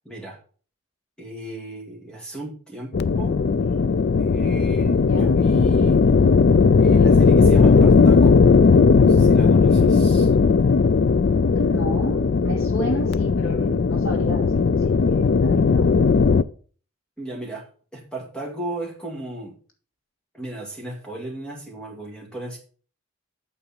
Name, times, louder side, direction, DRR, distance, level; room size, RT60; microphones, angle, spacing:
voice 1, 0.0-0.4 1.2-3.4 4.2-6.0 6.8-8.4 9.0-10.3 11.2-11.4 17.2-17.6 17.9-19.5 20.3-22.6, right 1 dB, 5° left, 0 dB, 2.3 m, -35 dB
sound 1, 2.9-16.4, left 5 dB, 50° left, 0.4 m, -17 dB
voice 2, 11.5-15.9, equal, 85° left, 2 dB, 2.5 m, -31 dB
8.5 x 5.5 x 5.6 m, 0.41 s
head